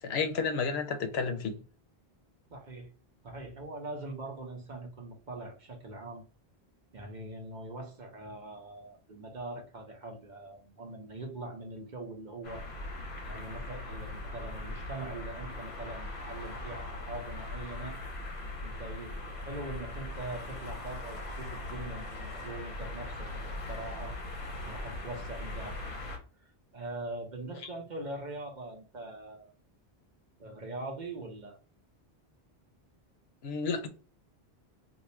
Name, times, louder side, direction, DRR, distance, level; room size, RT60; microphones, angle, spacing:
voice 1, 0.0-1.5 33.4-33.9, left 5 dB, 75° left, 0.9 m, -31 dB
voice 2, 2.5-2.9 3.2-6.2 6.9-12.7 13.2-18.0 18.6-24.2 24.6-25.9 26.7-29.5 30.4-31.6, right 2 dB, 50° right, 0.9 m, -42 dB
sound 1, 12.4-26.2, left 2 dB, 45° left, 1.0 m, -40 dB
2.7 x 2.3 x 4.1 m
omnidirectional pair, 1.1 m